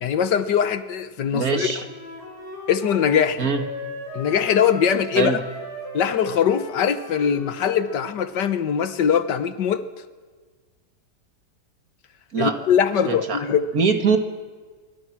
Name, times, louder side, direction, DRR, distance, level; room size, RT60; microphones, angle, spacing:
voice 1, 0.0-1.7 2.7-3.5 4.1-5.3 5.9-9.8 12.4-13.7, left 8 dB, 90° left, 1.8 m, -21 dB
voice 2, 1.3-1.8 3.4-3.6 5.2-5.4 12.3-12.6 13.1-13.4 13.7-14.2, right 5 dB, 55° right, 2.5 m, -22 dB
Wind instrument woodwind instrument, 1.8-8.1, left 2 dB, 65° left, 6.3 m, -37 dB
26.0 x 25.0 x 6.1 m
omnidirectional pair, 1.8 m